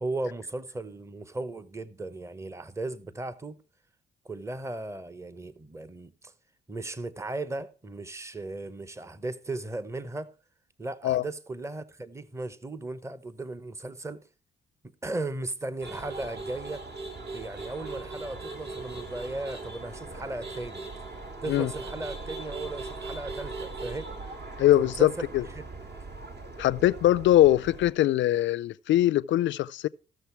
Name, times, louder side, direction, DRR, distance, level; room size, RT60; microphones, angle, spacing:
voice 1, 0.0-3.6 4.2-6.3 6.7-10.3 10.8-14.2 14.8-16.8 17.3-20.9 21.4-24.1 24.8-25.3, right 2 dB, 15° right, 0.9 m, -36 dB
sound 1, 15.8-27.9, right 3 dB, 55° right, 2.6 m, -40 dB
voice 2, 24.6-25.4 26.6-29.9, left 13 dB, 70° left, 0.5 m, -22 dB
14.5 x 6.6 x 4.5 m
cardioid pair, 90°, 20 cm